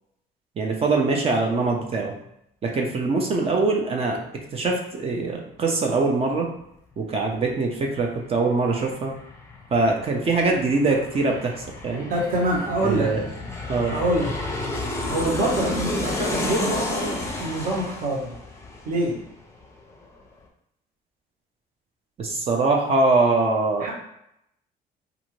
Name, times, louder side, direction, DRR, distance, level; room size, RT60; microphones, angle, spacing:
voice 1, 0.6-2.1 2.6-4.2 4.5-6.5 7.0-9.1 9.7-11.6 11.8-12.1 12.8-13.2 13.7-14.0 22.2-23.9, right 3 dB, 35° right, 1 dB, 0.6 m, -23 dB
Aircraft, 8.0-8.1 8.3-19.6 19.9-20.0, left 2 dB, 15° left, 0.6 m, -31 dB
voice 2, 12.1-13.1 13.9-14.3 15.1-18.3 18.8-19.2 23.8-23.9, right 1 dB, 55° right, -3 dB, 1.1 m, -25 dB
2.6 x 2.5 x 3.1 m, 0.77 s
cardioid pair, 110°, 17 cm